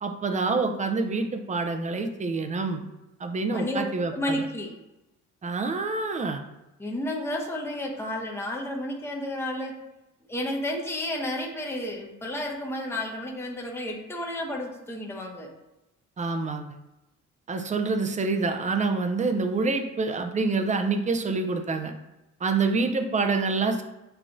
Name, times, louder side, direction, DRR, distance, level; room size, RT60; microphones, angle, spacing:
voice 1, 0.0-2.9 3.2-4.5 5.4-6.4 16.2-16.8 17.5-21.9 22.4-23.8, right 3 dB, 25° right, 6 dB, 0.5 m, -27 dB
voice 2, 3.5-4.7 6.8-9.7 10.3-15.5, left 1 dB, 10° left, 0 dB, 0.8 m, -31 dB
6.8 x 2.3 x 2.6 m, 0.98 s
cardioid pair, 90°, 30 cm